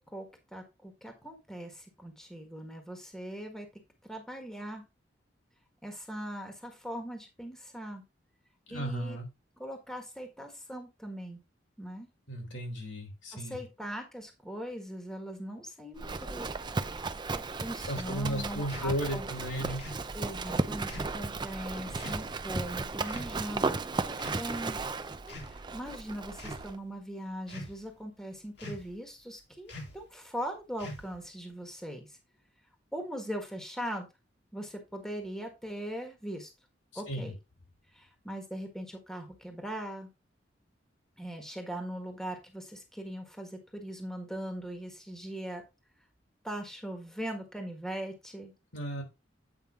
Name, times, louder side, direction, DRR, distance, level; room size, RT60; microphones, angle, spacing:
voice 1, 0.5-3.7 4.0-4.8 5.8-8.0 8.7-9.2 9.6-11.4 11.8-12.1 13.3-16.5 17.6-19.3 20.1-24.8 25.4-32.2 32.9-34.1 34.5-36.5 36.9-37.4 37.9-40.1 41.2-45.6 46.4-48.5, equal, 5° left, 4 dB, 1.5 m, -40 dB
voice 2, 8.7-9.3 12.3-13.6 17.9-19.8 36.9-37.3 48.7-49.0, equal, 80° left, 1 dB, 3.6 m, -35 dB
Livestock farm animals working animals, 16.0-26.8, right 3 dB, 25° right, 0.5 m, -35 dB
sound 1, 18.7-18.9 19.8-20.1 20.9-21.2 22.0-22.2 23.1-23.4 24.1-24.7 25.2-25.6 26.3-26.6 27.5-27.9 28.6-29.0 29.7-30.0 30.8-31.3, left 1 dB, 65° left, 2.4 m, -44 dB
8.8 x 5.3 x 3.6 m, 0.25 s
head